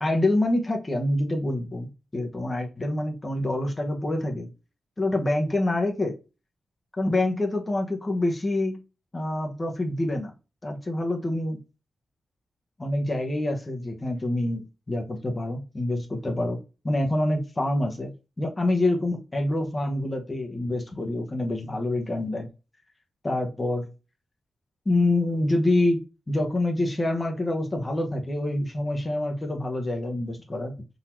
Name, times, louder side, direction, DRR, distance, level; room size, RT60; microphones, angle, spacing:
voice 1, 0.0-4.5 5.0-6.1 7.0-8.8 9.1-10.3 10.6-11.6 12.8-16.6 16.8-18.1 18.4-22.5 23.2-23.9 24.8-30.8, left 1 dB, 30° left, 3 dB, 1.1 m, -26 dB
4.0 x 2.8 x 4.5 m, 0.30 s
cardioid pair, 75°, 0 cm